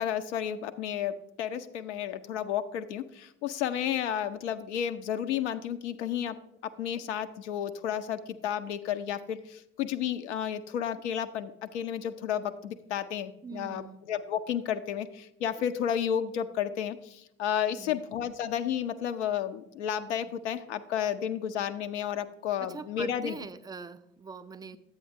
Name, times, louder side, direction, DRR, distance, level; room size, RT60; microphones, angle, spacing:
voice 1, 0.0-6.4 6.6-13.8 14.1-23.4, left 9 dB, 75° left, 10 dB, 0.5 m, -32 dB
voice 2, 13.4-14.0 17.8-18.1 22.6-24.8, right 5 dB, 10° right, 11 dB, 0.3 m, -43 dB
10.0 x 8.3 x 2.5 m, 0.78 s
figure-of-eight pair, 45°, 35 cm